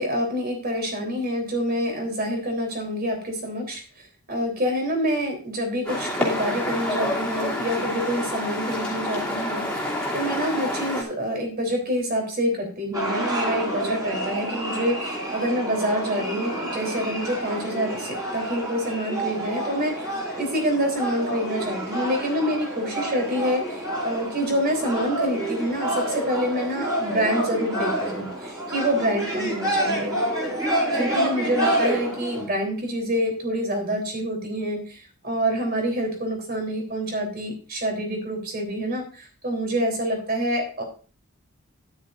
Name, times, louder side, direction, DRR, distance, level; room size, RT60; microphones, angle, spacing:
voice 1, 0.0-3.8 4.3-9.6 10.1-20.1 20.4-30.2 30.9-40.8, equal, 45° right, 2 dB, 3.5 m, -27 dB
sound 1, 5.9-11.0, left 1 dB, 5° left, 2.7 m, -28 dB
sound 2, 12.9-32.5, right 1 dB, 15° right, 4.0 m, -28 dB
12.5 x 10.5 x 2.6 m, 0.37 s
head